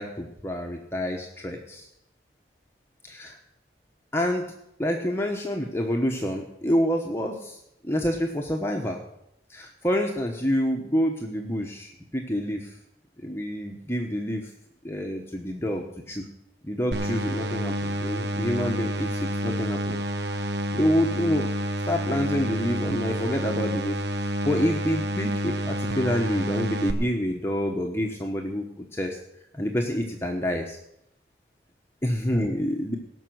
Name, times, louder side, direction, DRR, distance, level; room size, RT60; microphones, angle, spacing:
voice 1, 0.0-1.9 3.2-3.3 4.1-4.4 4.8-7.6 7.8-9.0 9.5-12.7 13.2-14.5 14.8-16.2 16.6-20.0 20.7-21.5 21.9-29.2 29.5-30.8 32.0-33.0, equal, 15° left, 1 dB, 1.0 m, -27 dB
sound 1, 16.9-26.9, equal, 75° right, 1.0 m, -29 dB
17.5 x 6.2 x 7.7 m, 0.80 s
head